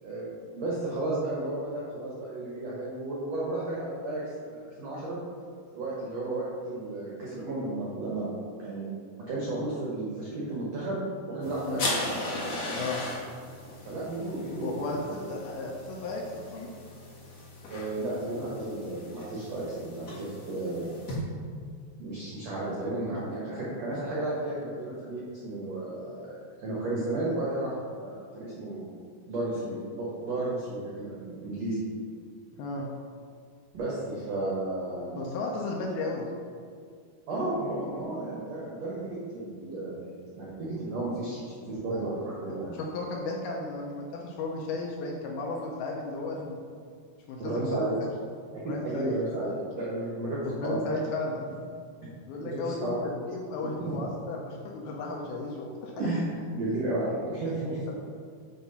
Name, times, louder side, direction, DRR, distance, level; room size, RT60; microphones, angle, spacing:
voice 1, 0.0-5.2 5.7-8.3 8.6-8.9 9.2-11.0 11.3-11.8 13.8-15.0 17.7-20.9 22.0-28.8 29.3-31.8 33.7-35.2 37.3-40.0 40.4-42.8 47.4-48.0 48.5-50.9 52.4-53.0 53.8-54.0 56.0-57.9, right 2 dB, 85° right, -6 dB, 1.4 m, -33 dB
sound 1, 11.4-21.1, left 2 dB, 55° left, 1.6 m, -38 dB
voice 2, 14.6-16.7 23.1-23.2 32.6-32.9 35.2-36.2 41.9-42.1 42.5-42.6 42.9-46.6 47.3-47.8 48.6-49.2 50.4-51.5 52.3-55.9 57.4-57.5 57.9-58.0, left 3 dB, 80° left, -1 dB, 2.3 m, -34 dB
8.2 x 3.5 x 5.5 m, 2.2 s
omnidirectional pair, 5.0 m